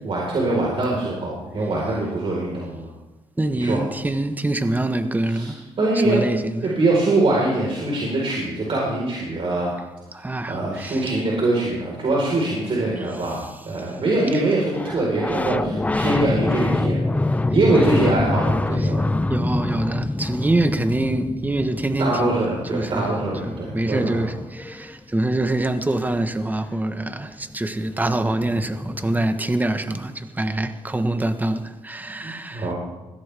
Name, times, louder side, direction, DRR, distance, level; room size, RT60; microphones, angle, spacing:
voice 1, 0.0-2.9 3.5-3.8 5.3-5.5 5.8-6.2 6.6-9.7 10.5-17.0 17.3-19.1 22.0-24.3 32.2-32.7, right 2 dB, 55° right, 4.4 m, -23 dB
voice 2, 3.4-5.6 6.0-6.7 10.1-11.1 18.8-19.0 19.3-22.4 22.7-23.1 23.4-32.7, right 2 dB, 15° right, 1.2 m, -25 dB
sound 1, 14.7-25.2 27.2-27.3 27.5-29.3, left 2 dB, 15° left, 0.6 m, -26 dB
21.0 x 16.0 x 3.5 m
cardioid pair, 85°, 11 cm